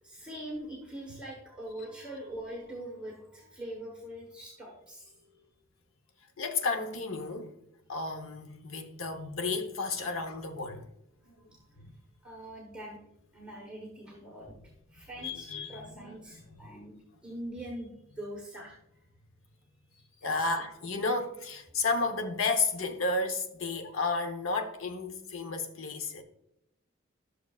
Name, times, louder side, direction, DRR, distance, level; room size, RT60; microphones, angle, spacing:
voice 1, 0.0-5.5 10.0-10.2 11.5-11.8 12.2-13.1 13.3-14.6 14.9-17.9 18.2-18.8 20.3-20.4 23.6-24.1, right 1 dB, 5° right, 1.2 m, -43 dB
voice 2, 6.4-7.5 7.9-10.8 11.4-11.5 11.8-11.9 15.2-16.2 16.5-16.6 20.2-26.2, left 3 dB, 80° left, 0.9 m, -32 dB
12.0 x 6.4 x 2.4 m
head